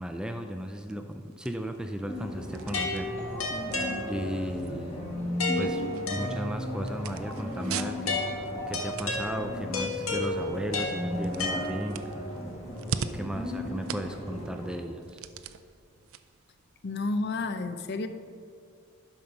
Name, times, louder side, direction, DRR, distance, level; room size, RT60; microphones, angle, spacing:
voice 1, 0.0-3.1 4.0-5.2 5.6-8.2 8.7-12.4 13.1-15.2, equal, 5° right, 6 dB, 0.3 m, -36 dB
sound 1, 0.6-17.5, right 7 dB, 75° right, 0.4 m, -44 dB
sound 2, 2.1-14.7, equal, 30° left, 1.9 m, -36 dB
sound 3, 2.7-4.5 5.4-6.8 8.1-12.2, left 2 dB, 85° left, 1.5 m, -33 dB
voice 2, 16.8-18.1, left 3 dB, 50° left, 9 dB, 0.5 m, -30 dB
11.0 x 5.4 x 5.9 m, 2.3 s
head